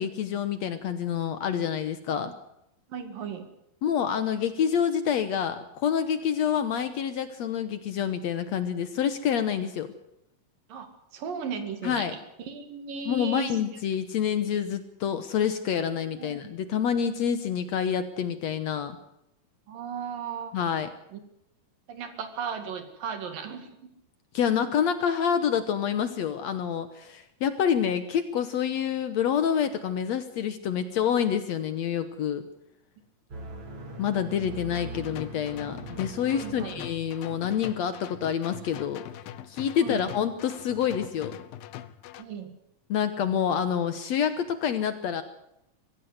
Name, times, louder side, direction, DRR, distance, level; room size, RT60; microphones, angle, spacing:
voice 1, 0.0-2.3 3.8-9.9 11.8-12.1 13.1-19.0 20.5-20.9 24.3-32.5 34.0-39.1 39.5-41.4 42.9-45.2, left 8 dB, 65° left, 10 dB, 1.9 m, -27 dB
voice 2, 2.9-3.5 10.7-13.6 16.2-16.5 19.7-20.5 21.1-21.2 21.9-23.9 36.3-36.8 39.8-40.0 42.2-42.5, right 6 dB, 80° right, 7 dB, 4.0 m, -36 dB
sound 1, 33.3-37.4, right 2 dB, 40° right, 2.9 m, -41 dB
sound 2, 34.7-42.2, left 12 dB, 90° left, 2.7 m, -43 dB
23.5 x 15.5 x 8.0 m, 0.82 s
omnidirectional pair, 3.9 m